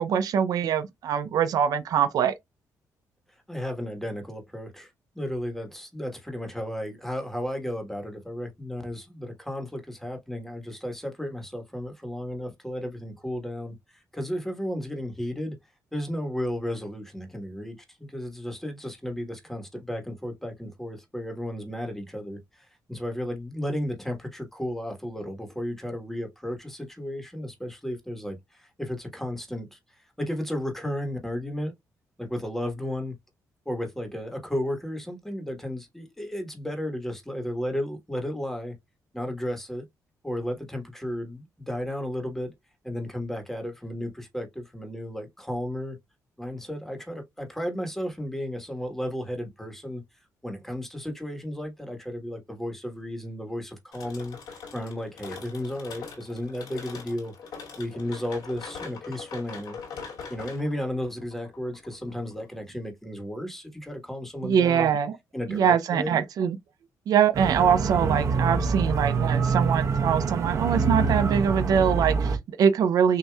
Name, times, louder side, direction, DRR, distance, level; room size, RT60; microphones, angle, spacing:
voice 1, 0.0-2.3 64.4-65.2 65.5-66.6 67.1-73.2, right 8 dB, 70° right, 0.5 m, -23 dB
voice 2, 3.5-15.5 15.9-29.8 30.2-31.7 32.2-33.1 33.6-38.7 39.1-39.8 40.2-42.5 42.8-46.0 46.4-50.0 50.4-57.3 57.8-59.8 60.3-64.9 65.3-66.2, equal, 5° left, 1.4 m, -33 dB
sound 1, 53.9-62.6, left 5 dB, 90° left, 2.5 m, -42 dB
sound 2, 67.3-72.4, right 5 dB, 50° right, 0.9 m, -25 dB
6.4 x 2.7 x 2.3 m
cardioid pair, 110°, 7 cm